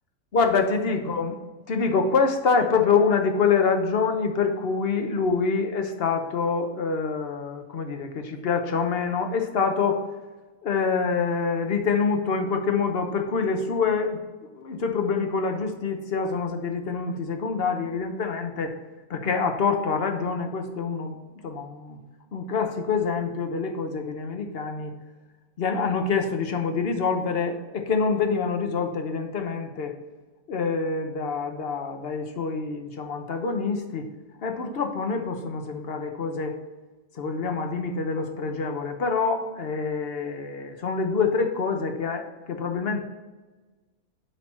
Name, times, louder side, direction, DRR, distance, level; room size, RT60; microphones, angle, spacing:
voice 1, 0.3-1.4 1.7-10.0 10.6-14.2 14.5-18.7 19.1-21.1 21.4-22.0 22.3-24.9 25.6-30.0 30.5-34.1 34.4-36.6 37.1-43.0, left 5 dB, 45° left, 5 dB, 1.0 m, -26 dB
7.8 x 4.6 x 4.3 m, 1.2 s
omnidirectional pair, 1.6 m